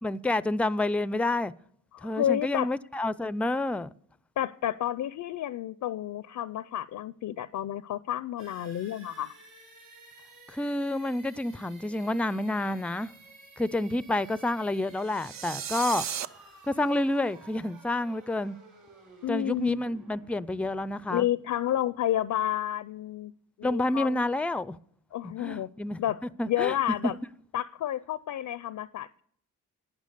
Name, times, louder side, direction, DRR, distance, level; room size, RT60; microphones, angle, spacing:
voice 1, 0.0-1.5 2.0-3.9 10.5-13.1 13.6-16.1 16.7-18.6 19.3-21.3 23.6-24.8 25.2-26.0 26.4-26.7, left 2 dB, 5° left, 0.4 m, -29 dB
voice 2, 1.9-2.7 4.4-9.3 19.2-19.8 21.1-23.3 23.6-24.3 25.1-25.7 26.0-26.2 26.5-27.1 27.5-29.2, left 12 dB, 70° left, 0.5 m, -30 dB
sound 1, 8.4-22.1, right 3 dB, 90° right, 4.8 m, -54 dB
sound 2, 15.1-16.3, right 8 dB, 60° right, 0.6 m, -35 dB
11.5 x 9.0 x 6.7 m
cardioid pair, 70°, 32 cm